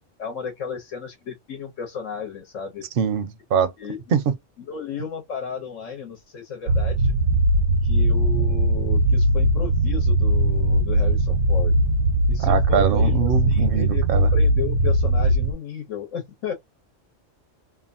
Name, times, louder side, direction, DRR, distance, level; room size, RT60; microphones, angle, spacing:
voice 1, 0.2-2.8 3.8-4.2 4.6-7.1 7.8-11.7 12.3-16.5, left 7 dB, 85° left, 1.3 m, -34 dB
voice 2, 3.0-3.7 4.1-4.3 12.4-14.3, right 7 dB, 60° right, 0.6 m, -23 dB
sound 1, 6.7-15.5, right 1 dB, 85° right, 1.0 m, -20 dB
2.8 x 2.3 x 2.5 m
omnidirectional pair, 1.3 m